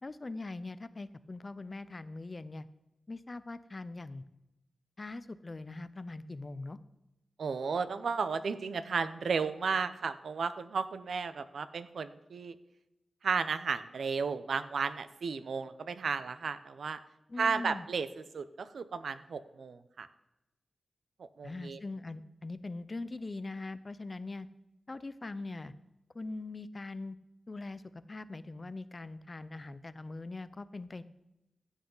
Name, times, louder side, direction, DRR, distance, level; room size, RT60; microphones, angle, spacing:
voice 1, 0.0-2.7 3.1-4.2 5.0-6.8 17.3-17.9 21.4-24.5 24.9-25.7 26.1-27.2 27.5-31.0, left 2 dB, 35° left, 14 dB, 0.5 m, -42 dB
voice 2, 7.4-12.5 13.2-17.0 17.4-18.1 18.3-20.1 21.2-21.8, right 5 dB, 85° right, 12 dB, 0.6 m, -34 dB
15.5 x 8.2 x 3.9 m, 0.92 s
wide cardioid pair, 115°, 0 cm